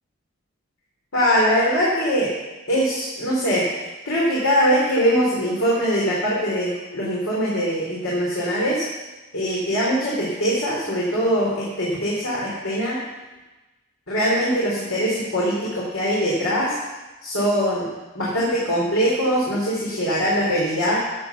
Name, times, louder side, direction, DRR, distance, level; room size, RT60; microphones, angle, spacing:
voice 1, 1.1-2.3 2.7-3.6 4.0-8.9 9.3-13.0 14.1-16.8 17.2-17.9 18.1-21.0, equal, 75° left, -6 dB, 3.3 m, -22 dB
13.0 x 7.5 x 7.1 m, 1.1 s
head